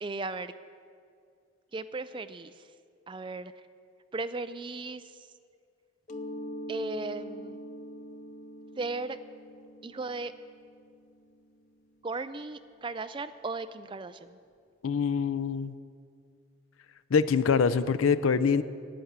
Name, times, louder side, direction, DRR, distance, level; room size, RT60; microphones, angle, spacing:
voice 1, 0.0-0.5 1.7-2.5 3.1-3.5 4.1-5.0 6.7-7.6 8.8-9.2 9.8-10.3 12.0-14.4, right 3 dB, 25° right, 11 dB, 0.4 m, -36 dB
Mallet percussion, 6.1-11.6, equal, 35° left, 0.5 m, -43 dB
voice 2, 14.8-15.7 17.1-18.6, left 5 dB, 85° left, 14 dB, 0.5 m, -24 dB
10.5 x 9.7 x 8.0 m, 2.3 s
head